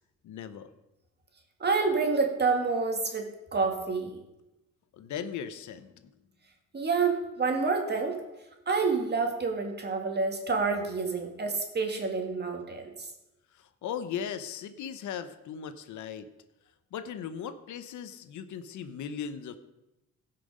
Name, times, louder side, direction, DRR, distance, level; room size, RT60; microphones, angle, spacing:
voice 1, 0.2-0.7 4.9-6.1 13.6-16.3 16.9-19.6, left 8 dB, 75° left, 11 dB, 0.9 m, -38 dB
voice 2, 1.6-4.2 6.7-8.2 8.7-13.1, right 4 dB, 35° right, 3 dB, 2.2 m, -28 dB
16.0 x 5.9 x 5.0 m, 0.95 s
cardioid pair, 90°, 30 cm